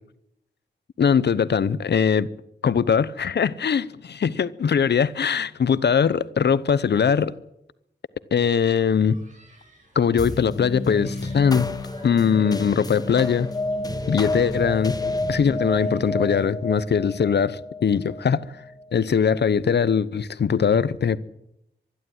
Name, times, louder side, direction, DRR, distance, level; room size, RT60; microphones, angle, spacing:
voice 1, 1.0-2.3 2.6-7.3 8.3-9.2 9.9-11.7 12.0-13.5 14.1-18.4 18.9-21.2, left 7 dB, 70° left, 0.9 m, -21 dB
Human group actions, 8.4-16.1, right 1 dB, 45° right, 6.3 m, -53 dB
sound 1, 10.2-18.9, left 2 dB, 20° left, 1.2 m, -30 dB
24.0 x 11.5 x 9.5 m
wide cardioid pair, 150°, 18 cm